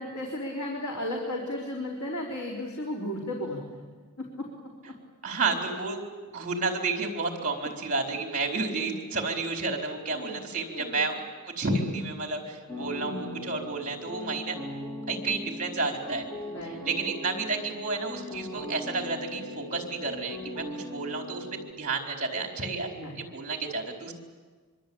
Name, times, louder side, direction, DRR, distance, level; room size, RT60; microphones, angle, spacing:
voice 1, 0.0-3.8 4.2-4.5 4.9-5.0 10.1-10.4 10.7-11.1 11.8-12.1 13.0-13.3 16.5-16.8 17.1-17.2 22.9-23.2, left 1 dB, 90° left, -1 dB, 4.0 m, -35 dB
voice 2, 5.2-6.0 6.3-11.2 11.4-14.6 15.1-16.3 16.6-22.9 23.2-24.1, right 3 dB, 35° right, 2 dB, 4.2 m, -31 dB
sound 1, 12.7-21.7, left 1 dB, 10° left, 3.1 m, -40 dB
24.5 x 24.5 x 8.8 m, 1.5 s
head